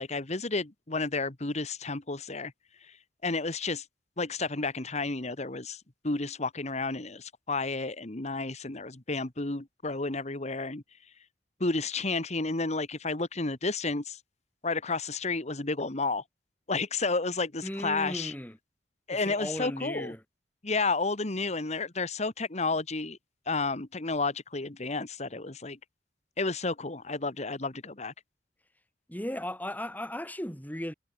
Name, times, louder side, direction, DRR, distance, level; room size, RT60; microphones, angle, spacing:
voice 1, 0.0-2.5 2.8-3.0 3.2-3.8 4.2-10.8 11.6-14.2 14.6-16.2 16.7-18.3 19.1-20.1 20.6-23.2 23.5-25.8 26.4-28.1, left 3 dB, 40° left, 1.6 m, -31 dB
voice 2, 17.6-18.6 19.1-20.2 29.1-30.9, left 1 dB, 10° left, 4.9 m, -36 dB
head